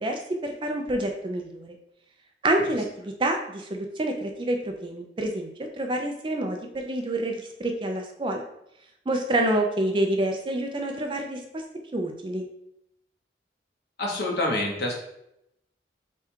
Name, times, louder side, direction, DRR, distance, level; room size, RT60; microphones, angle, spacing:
voice 1, 0.0-1.7 2.4-5.5 5.8-8.4 9.1-11.4 11.9-12.4, right 1 dB, 25° right, 3 dB, 0.4 m, -27 dB
voice 2, 14.0-14.9, left 1 dB, 65° left, -1 dB, 0.9 m, -27 dB
3.5 x 2.3 x 4.3 m, 0.79 s
head